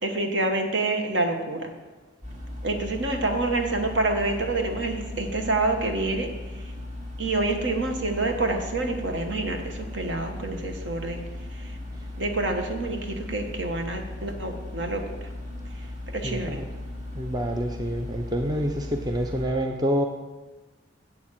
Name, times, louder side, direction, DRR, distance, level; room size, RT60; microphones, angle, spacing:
voice 1, 0.0-1.7 2.6-6.7 7.2-11.2 11.5-11.8 12.2-15.3 15.7-15.9 16.1-16.6, right 2 dB, 65° right, 4 dB, 1.3 m, -27 dB
sound 1, 2.2-19.5, left 1 dB, 35° right, 2.0 m, -37 dB
voice 2, 16.2-16.7 17.1-20.0, equal, 20° right, 3 dB, 0.5 m, -27 dB
8.2 x 7.2 x 7.4 m, 1.2 s
head